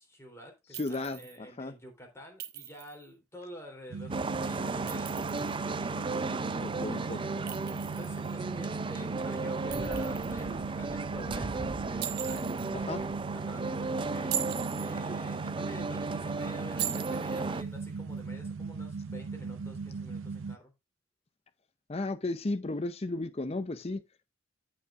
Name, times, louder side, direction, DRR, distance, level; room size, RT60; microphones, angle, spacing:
voice 1, 0.0-14.3 14.7-20.7, equal, 15° left, 3.1 m, -49 dB
voice 2, 0.7-1.7 6.6-7.2 12.7-13.0 21.9-24.0, left 2 dB, 30° left, 0.5 m, -34 dB
Chink clink, 0.7-1.4 2.4-3.0 4.7-5.6 7.5-8.3 9.7-10.4 12.0-12.7 14.1-14.9 16.8-17.4, right 11 dB, 50° right, 1.2 m, -39 dB
sound 1, 3.9-20.6, right 4 dB, 70° right, 0.6 m, -38 dB
sound 2, 4.1-17.6, right 3 dB, 25° right, 0.4 m, -35 dB
15.5 x 5.5 x 2.4 m
head